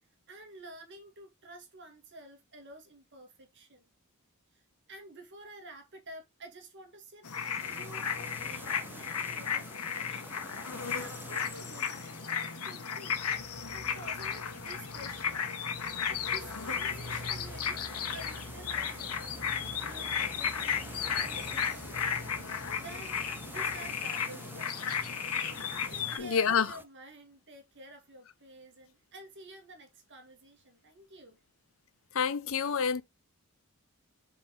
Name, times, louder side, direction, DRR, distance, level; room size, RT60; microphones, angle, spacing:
voice 1, 0.3-3.9 4.5-4.6 4.9-10.4 11.0-12.3 12.6-13.2 13.7-15.5 16.1-19.4 19.8-22.2 22.8-24.7 25.9-31.4, right 2 dB, 55° right, 2.1 m, -50 dB
sound 1, 7.2-26.2, left 7 dB, 85° left, 1.4 m, -34 dB
sound 2, 7.6-26.9, right 2 dB, 10° right, 0.6 m, -50 dB
sound 3, 13.1-24.0, left 1 dB, 10° left, 2.5 m, -51 dB
voice 2, 26.2-26.8 32.1-33.0, left 6 dB, 65° left, 0.7 m, -28 dB
7.7 x 4.3 x 3.6 m
head